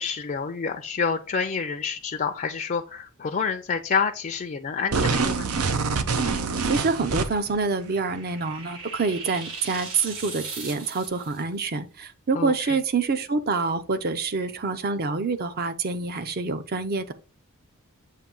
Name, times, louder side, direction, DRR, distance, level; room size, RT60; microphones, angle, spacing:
voice 1, 0.0-5.5 12.3-12.8, left 5 dB, 40° left, 0.5 m, -28 dB
sound 1, 4.9-7.6, right 4 dB, 85° right, 0.8 m, -25 dB
voice 2, 6.6-17.1, right 4 dB, 45° right, 0.6 m, -26 dB
sound 2, 7.4-11.4, right 4 dB, 65° right, 2.0 m, -39 dB
7.5 x 2.7 x 5.3 m
head